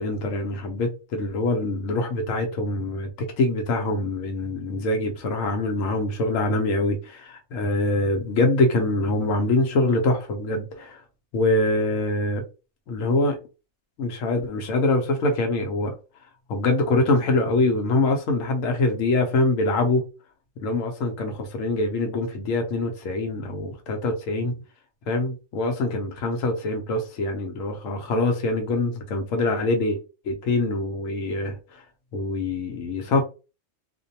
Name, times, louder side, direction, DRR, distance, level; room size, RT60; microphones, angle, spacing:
voice 1, 0.0-11.0 11.3-12.4 12.9-13.4 14.0-15.9 16.5-20.0 20.6-24.6 25.1-30.0 30.2-31.6 32.1-33.2, left 2 dB, 85° left, 1.0 m, -24 dB
2.5 x 2.2 x 2.7 m
omnidirectional pair, 1.3 m